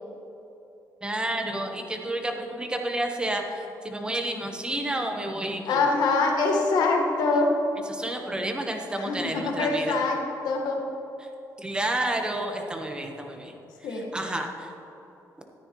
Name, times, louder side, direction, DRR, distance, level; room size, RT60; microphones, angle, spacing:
voice 1, 1.0-5.8 7.9-10.0 11.6-13.5 13.9-14.7, right 1 dB, 15° right, 3 dB, 1.2 m, -30 dB
voice 2, 5.7-7.5 9.0-10.8 13.8-14.1, left 3 dB, 80° left, 1 dB, 1.5 m, -24 dB
14.0 x 9.6 x 3.1 m, 3.0 s
cardioid pair, 105°, 7 cm